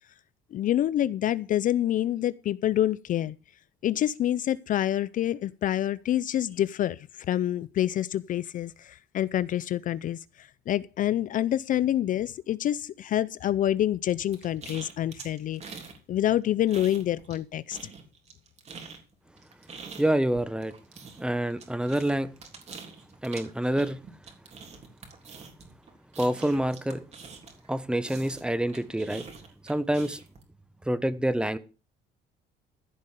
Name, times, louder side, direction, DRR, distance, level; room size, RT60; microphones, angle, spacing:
voice 1, 0.5-3.4 3.8-15.8 16.1-17.9, left 12 dB, 50° left, 0.5 m, -27 dB
sound 1, 14.3-16.0 16.3-17.4 17.7-27.7 28.0-30.4, right 5 dB, 40° right, 3.4 m, -45 dB
voice 2, 20.0-20.7 21.2-22.3 23.2-24.0 26.2-27.0 27.7-29.2 29.6-30.2 30.9-31.6, right 1 dB, 5° right, 1.1 m, -27 dB
15.0 x 5.3 x 6.6 m
cardioid pair, 110°, 17 cm